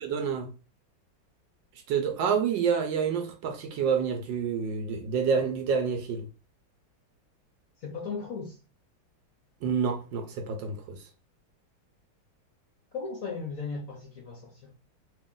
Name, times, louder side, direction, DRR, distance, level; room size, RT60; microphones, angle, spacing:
voice 1, 0.0-0.5 1.9-6.3 9.6-11.0, right 6 dB, 75° right, 1.3 m, -28 dB
voice 2, 7.8-8.6 12.9-14.7, left 4 dB, 60° left, 0.9 m, -36 dB
3.1 x 2.9 x 3.6 m
omnidirectional pair, 2.2 m